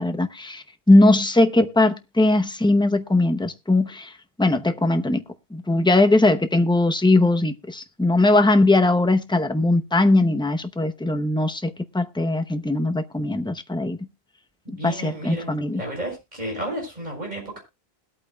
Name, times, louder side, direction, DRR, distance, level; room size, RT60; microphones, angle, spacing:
voice 1, 0.0-4.1 4.4-5.2 5.5-14.0 14.7-15.8, left 2 dB, 5° left, 0.6 m, -20 dB
voice 2, 14.6-17.6, right 1 dB, 45° right, 6.1 m, -32 dB
21.0 x 8.7 x 2.2 m
omnidirectional pair, 1.1 m